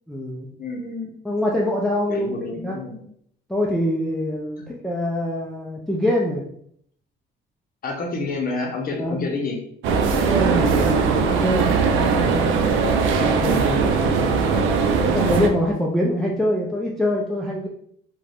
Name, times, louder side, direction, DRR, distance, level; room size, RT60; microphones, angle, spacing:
voice 1, 0.1-0.5 1.2-2.3 2.6-2.8 3.5-6.4 8.9-9.2 10.3-14.4 15.1-17.7, left 1 dB, ahead, -3 dB, 0.4 m, -25 dB
voice 2, 0.6-1.1 2.1-3.0 4.6-4.7 7.8-9.6, left 3 dB, 45° left, 0 dB, 0.7 m, -29 dB
sound 1, 9.8-15.5, right 5 dB, 70° right, 0.4 m, -20 dB
2.4 x 2.2 x 3.3 m, 0.66 s
cardioid pair, 100°, 21 cm